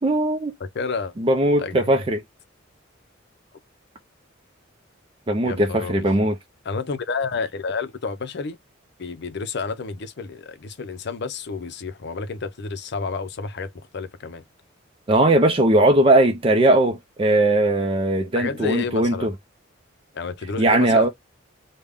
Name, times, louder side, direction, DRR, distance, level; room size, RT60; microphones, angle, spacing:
voice 1, 0.0-0.5 1.2-2.2 5.3-6.4 15.1-19.3 20.6-21.1, right 1 dB, 25° right, 0.5 m, -19 dB
voice 2, 0.6-1.1 1.6-1.8 5.4-6.1 6.6-8.6 9.0-14.4 18.3-19.3 20.1-21.1, left 4 dB, 55° left, 0.5 m, -30 dB
3.5 x 2.2 x 3.5 m
head